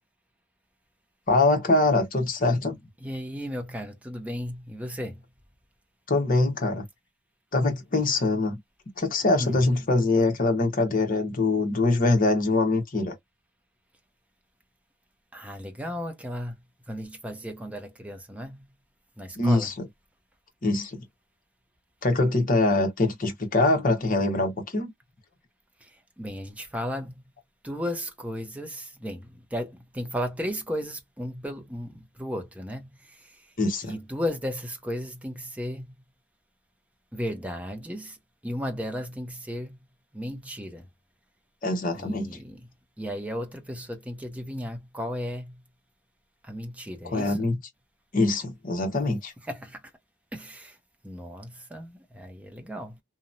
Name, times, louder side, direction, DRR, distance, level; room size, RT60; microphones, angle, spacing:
voice 1, 1.3-2.8 6.1-6.8 7.5-8.6 9.0-13.1 19.4-19.7 20.6-21.0 22.0-24.9 33.6-33.9 41.6-42.4 47.1-47.6 48.1-49.3, left 2 dB, 45° left, 1.0 m, -23 dB
voice 2, 3.0-5.2 9.4-9.6 15.3-16.5 16.9-18.7 19.2-19.7 25.8-27.1 27.6-33.4 33.8-35.9 37.1-38.2 38.4-39.8 40.1-40.9 42.0-42.6 43.0-45.6 46.4-47.5 49.5-49.8 50.3-50.8 51.0-53.0, equal, 5° right, 0.5 m, -35 dB
2.9 x 2.0 x 2.5 m
head